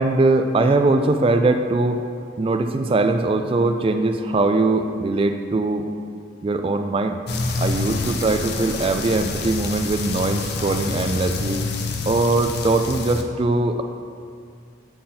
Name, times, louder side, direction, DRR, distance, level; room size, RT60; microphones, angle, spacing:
voice 1, 0.0-2.0 2.4-5.9 6.4-7.2 7.6-11.6 12.1-13.8, right 2 dB, 25° right, 6 dB, 0.3 m, -21 dB
sound 1, 7.3-13.2, left 3 dB, 55° left, 0.5 m, -27 dB
8.5 x 3.9 x 4.2 m, 2.3 s
head